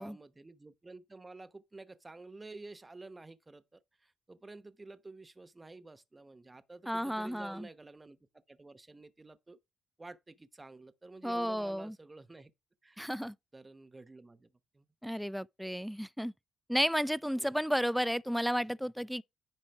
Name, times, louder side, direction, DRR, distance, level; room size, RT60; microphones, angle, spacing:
voice 1, 0.0-9.6 10.0-12.5 12.8-13.0 13.5-14.9 17.4-17.6, right 3 dB, 20° right, 0.9 m, -51 dB
voice 2, 6.9-7.7 11.2-12.0 13.0-13.3 15.0-16.3 16.7-19.2, equal, ahead, 0.4 m, -32 dB
9.9 x 4.3 x 4.6 m
cardioid pair, 80°, 0 cm